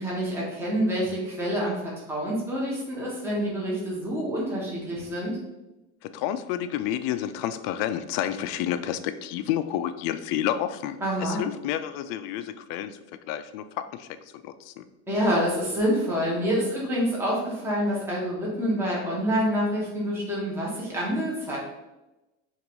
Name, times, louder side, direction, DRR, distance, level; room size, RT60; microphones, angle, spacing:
voice 1, 0.0-5.4 11.0-11.4 15.1-21.6, equal, 5° right, -5 dB, 1.0 m, -27 dB
voice 2, 6.0-13.0 13.3-14.1 14.3-14.9, left 11 dB, 70° left, 11 dB, 0.5 m, -30 dB
5.2 x 2.6 x 3.0 m, 1.0 s
cardioid pair, 135°, 36 cm